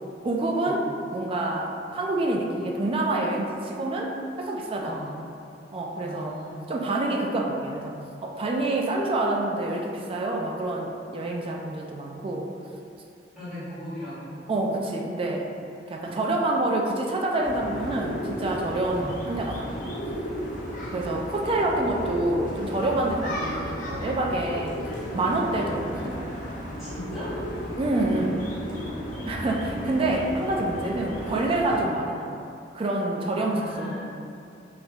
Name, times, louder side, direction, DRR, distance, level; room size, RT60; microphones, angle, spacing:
voice 1, 0.2-0.9 1.1-4.1 4.4-5.0 5.7-6.4 6.7-8.0 8.2-12.5 14.5-15.4 15.9-19.7 20.9-24.8 25.1-26.2 27.8-28.5 29.3-32.4 32.7-34.1, right 2 dB, 30° right, 0 dB, 0.3 m, -27 dB
voice 2, 4.8-5.2 6.0-6.5 13.3-14.4 19.0-19.2 26.8-27.5 29.7-30.0 33.3-34.1, equal, ahead, -15 dB, 1.5 m, -38 dB
sound 1, 17.4-31.8, equal, 45° left, 0.5 m, -34 dB
3.3 x 2.6 x 2.9 m, 2.6 s
head